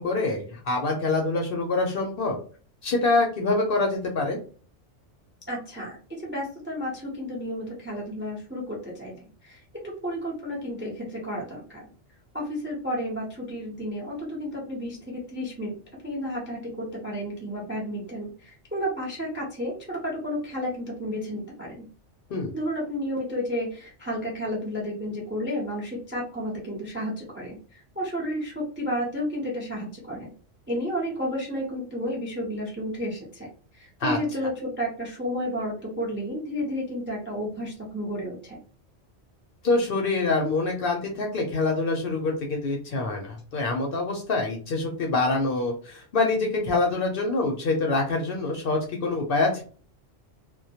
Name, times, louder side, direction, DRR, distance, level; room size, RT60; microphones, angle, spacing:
voice 1, 0.0-2.4 2.8-4.4 22.3-22.5 34.0-34.2 39.6-49.6, left 3 dB, 60° left, 1 dB, 0.7 m, -25 dB
voice 2, 5.5-9.2 9.4-9.6 9.8-11.8 12.3-15.8 16.0-21.9 22.5-27.6 28.0-30.3 30.7-33.5 33.8-38.6, equal, 15° right, -2 dB, 0.4 m, -32 dB
2.2 x 2.1 x 2.7 m, 0.41 s
omnidirectional pair, 1.3 m